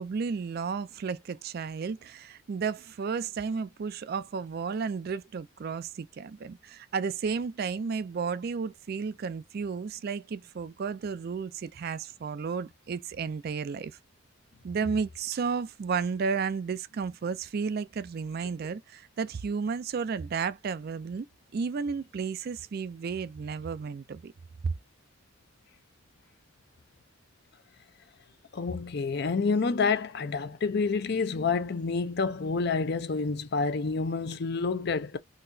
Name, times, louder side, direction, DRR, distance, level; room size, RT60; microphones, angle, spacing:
voice 1, 0.0-14.0 14.6-21.3 21.5-24.3 24.6-24.7, right 5 dB, 45° right, 0.3 m, -33 dB
voice 2, 28.5-35.2, left 4 dB, 50° left, 0.5 m, -28 dB
3.8 x 2.9 x 2.6 m
head